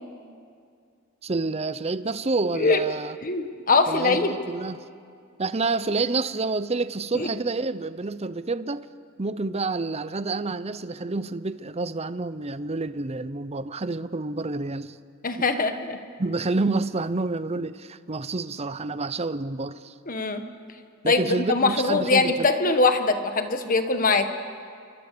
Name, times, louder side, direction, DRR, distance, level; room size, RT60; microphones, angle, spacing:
voice 1, 1.2-3.2 3.9-4.8 5.4-8.9 9.2-15.0 16.2-19.9 21.0-22.5, right 3 dB, 30° right, 14 dB, 0.7 m, -28 dB
voice 2, 3.2-4.4 7.1-7.3 15.2-16.0 20.1-20.4 21.0-24.3, left 3 dB, 40° left, 7 dB, 1.5 m, -22 dB
28.5 x 24.5 x 6.9 m, 2.3 s
head